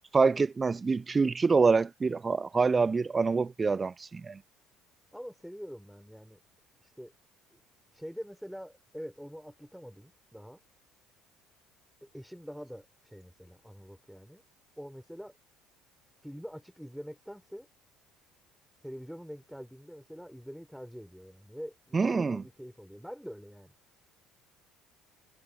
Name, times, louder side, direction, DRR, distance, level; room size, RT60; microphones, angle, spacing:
voice 1, 0.1-4.4 21.9-22.4, right 4 dB, 30° right, 0.4 m, -26 dB
voice 2, 5.1-6.4 6.8-7.1 7.5-7.6 7.9-10.6 12.0-14.4 14.8-15.4 16.2-17.7 18.8-23.7, equal, ahead, 5.9 m, -45 dB
hypercardioid pair, 60°, 0 cm